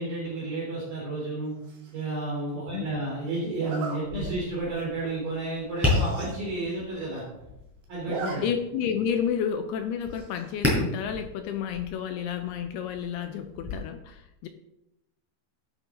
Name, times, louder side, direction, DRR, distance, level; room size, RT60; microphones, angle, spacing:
voice 1, 0.0-1.5 1.9-7.2 7.9-8.4, right 2 dB, 50° right, -6 dB, 5.1 m, -31 dB
Zipper (clothing), 1.6-2.0 3.6-4.0 4.5-4.7 5.0-5.1 5.4-5.5 5.7-6.3 6.7-6.8 7.0-7.5 7.8-8.4 8.7-8.8 10.1-10.5, right 3 dB, 75° right, 4.9 m, -38 dB
voice 2, 2.5-2.9 8.4-14.5, left 8 dB, 85° left, 6 dB, 2.3 m, -31 dB
Tap, 4.0-13.7, left 2 dB, 5° right, 5.2 m, -33 dB
14.0 x 10.5 x 3.9 m, 0.88 s
omnidirectional pair, 5.4 m